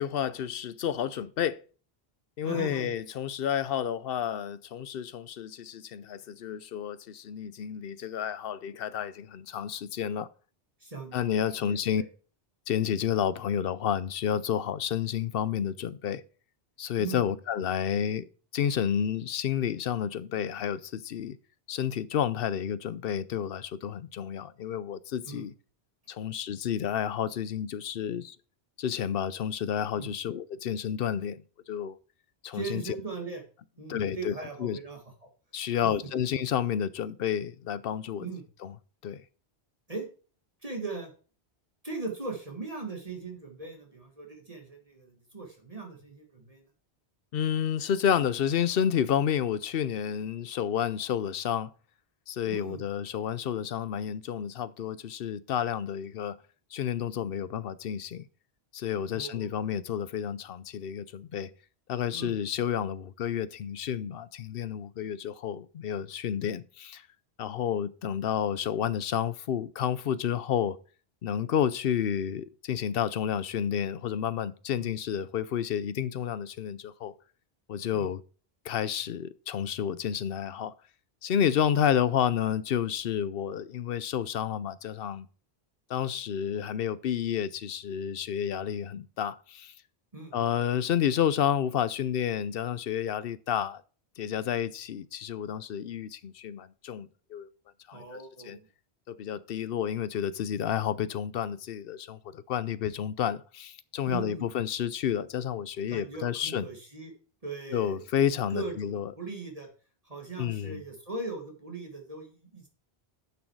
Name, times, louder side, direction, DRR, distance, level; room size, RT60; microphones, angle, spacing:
voice 1, 0.0-1.6 2.4-10.3 11.1-12.0 12.7-16.2 16.8-18.2 18.5-21.4 21.7-25.5 26.1-28.4 28.8-31.4 31.7-32.0 32.4-32.8 33.9-34.3 34.6-34.8 35.5-38.3 38.6-38.7 39.0-39.2 47.3-51.7 52.3-56.4 56.7-58.3 58.7-61.5 61.9-67.0 67.4-70.8 71.2-77.1 77.7-78.2 78.6-80.7 81.2-85.3 85.9-89.7 90.3-93.8 94.2-97.5 97.9-98.1 98.5-98.6 99.1-106.6 107.7-109.1 110.4-110.8, left 9 dB, 65° left, 0.8 m, -30 dB
voice 2, 2.4-2.9 10.8-12.1 17.0-17.2 25.2-25.5 30.0-30.1 32.5-33.5 33.8-35.3 38.2-38.5 39.9-40.1 40.6-41.1 41.8-46.7 52.4-52.8 59.1-59.5 62.1-62.4 74.8-74.9 77.9-78.1 90.1-90.5 97.9-98.7 104.1-104.5 105.9-107.1 107.4-108.0 108.5-109.7 110.0-112.7, right 3 dB, 35° right, 1.8 m, -39 dB
10.0 x 6.3 x 4.6 m
omnidirectional pair, 1.1 m